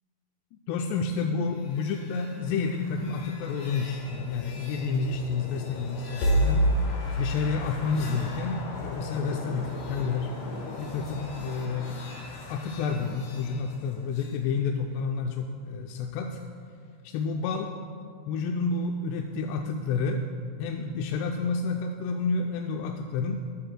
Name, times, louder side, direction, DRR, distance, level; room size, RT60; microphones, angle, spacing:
voice 1, 0.7-6.7 7.2-10.3 10.8-12.0 12.5-16.4 17.0-17.7 18.3-20.3 20.6-23.4, left 4 dB, 85° left, 2 dB, 2.6 m, -30 dB
sound 1, 1.5-14.4, equal, 65° left, 2.9 m, -33 dB
19.5 x 10.5 x 2.2 m, 2.2 s
omnidirectional pair, 4.9 m